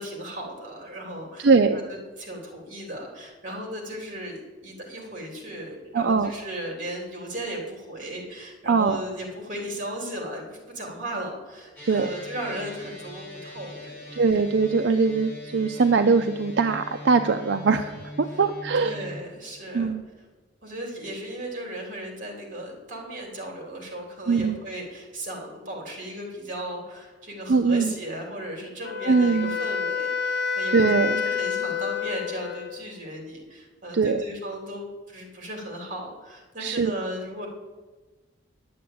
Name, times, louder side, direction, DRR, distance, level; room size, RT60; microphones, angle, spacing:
voice 1, 0.0-14.2 18.8-19.9 20.6-30.9 31.2-37.5, right 1 dB, 40° right, 1 dB, 3.2 m, -36 dB
voice 2, 1.4-1.8 5.9-6.3 8.7-9.0 11.9-12.1 14.2-19.1 19.7-20.0 24.3-24.6 27.5-27.9 29.1-29.5 30.7-31.2 33.9-34.2 36.6-36.9, right 4 dB, 65° right, 7 dB, 0.5 m, -21 dB
sound 1, 11.8-19.2, left 1 dB, 10° left, 3.8 m, -41 dB
Wind instrument woodwind instrument, 28.8-32.9, left 6 dB, 60° left, 0.8 m, -28 dB
10.0 x 7.6 x 8.6 m, 1.3 s
head